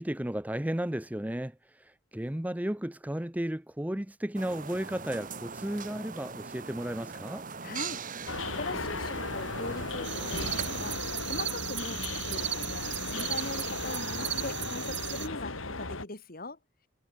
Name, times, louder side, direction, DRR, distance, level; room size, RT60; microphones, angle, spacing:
voice 1, 0.0-7.4, right 1 dB, 10° right, 0.7 m, -34 dB
sound 1, 4.3-11.0, right 5 dB, 40° right, 1.5 m, -41 dB
voice 2, 7.6-8.0 8.5-11.0 11.3-16.6, left 2 dB, 45° left, 3.2 m, -40 dB
sound 2, 8.3-16.0, left 3 dB, 90° left, 4.4 m, -36 dB
sound 3, 10.0-15.3, right 12 dB, 60° right, 3.3 m, -36 dB
head